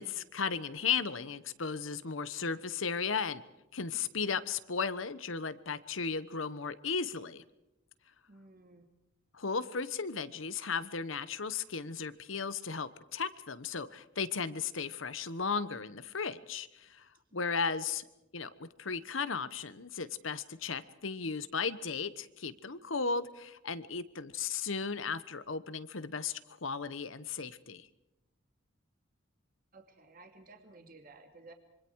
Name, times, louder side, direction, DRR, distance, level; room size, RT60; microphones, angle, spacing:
voice 1, 0.0-3.4 3.7-7.4 9.3-18.1 18.3-27.9, left 5 dB, 80° left, 14 dB, 1.2 m, -35 dB
voice 2, 8.3-8.9 17.3-17.8 29.7-31.5, right 3 dB, 45° right, 5 dB, 2.5 m, -55 dB
26.0 x 24.5 x 4.8 m, 0.93 s
head